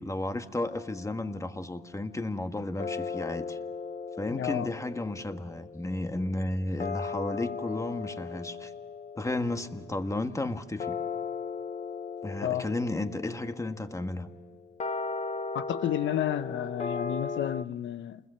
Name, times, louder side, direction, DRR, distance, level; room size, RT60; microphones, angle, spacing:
voice 1, 0.0-3.6 4.2-8.7 9.1-11.0 12.2-14.3, left 2 dB, 15° left, 1.5 m, -33 dB
sound 1, 0.7-2.0 2.8-17.6, left 4 dB, 35° left, 1.0 m, -38 dB
voice 2, 4.3-4.7 12.4-12.6 15.5-18.2, left 11 dB, 70° left, 0.9 m, -31 dB
29.0 x 21.0 x 6.7 m
cardioid pair, 90°, 20 cm